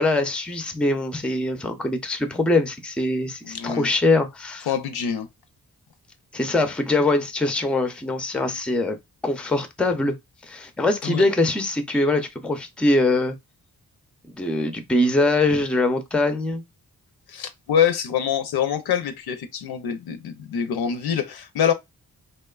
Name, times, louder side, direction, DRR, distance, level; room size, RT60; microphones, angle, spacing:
voice 1, 0.0-4.7 6.3-9.0 9.2-10.2 10.4-13.4 14.4-16.6, left 2 dB, 5° left, 0.4 m, -23 dB
voice 2, 3.4-3.9 4.6-5.3 11.0-11.3 17.3-21.7, left 8 dB, 80° left, 0.5 m, -25 dB
2.9 x 2.2 x 2.2 m
cardioid pair, 75°, 38 cm